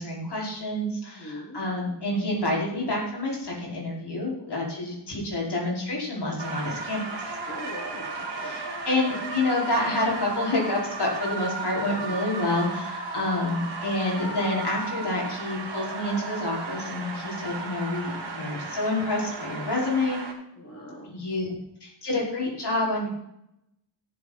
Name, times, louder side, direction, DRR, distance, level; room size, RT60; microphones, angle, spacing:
voice 1, 0.0-7.4 8.4-20.2 21.1-21.5 21.8-23.1, left 2 dB, 65° left, -3 dB, 5.4 m, -28 dB
voice 2, 1.1-1.6 7.5-8.6 13.1-13.2 20.6-21.3, left 1 dB, 35° left, -3 dB, 2.8 m, -41 dB
sound 1, 6.4-20.3, right 3 dB, 80° right, 2.5 m, -35 dB
17.5 x 7.9 x 4.3 m, 0.80 s
wide cardioid pair, 95°, 43 cm